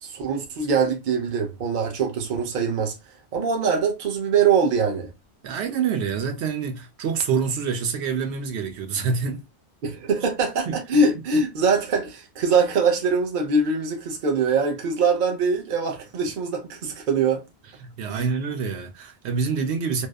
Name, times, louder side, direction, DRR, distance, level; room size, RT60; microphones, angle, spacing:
voice 1, 0.0-3.0 3.3-5.1 9.8-17.4 18.1-18.3, right 4 dB, 50° right, 0.7 m, -23 dB
voice 2, 5.4-9.4 10.7-10.8 11.3-11.4 17.8-20.1, right 6 dB, 80° right, 0.8 m, -26 dB
2.8 x 2.0 x 2.2 m
omnidirectional pair, 1.1 m